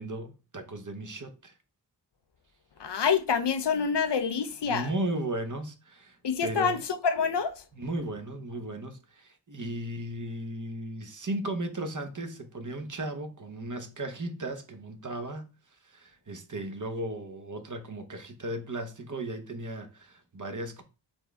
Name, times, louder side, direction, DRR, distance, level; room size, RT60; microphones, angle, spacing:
voice 1, 0.0-1.5 4.6-6.2 6.4-6.8 7.8-15.5 15.8-20.8, right 1 dB, 45° right, 0.8 m, -36 dB
voice 2, 2.8-4.9 6.2-7.6, left 6 dB, 75° left, 0.6 m, -27 dB
4.2 x 3.3 x 3.6 m
wide cardioid pair, 70°, 42 cm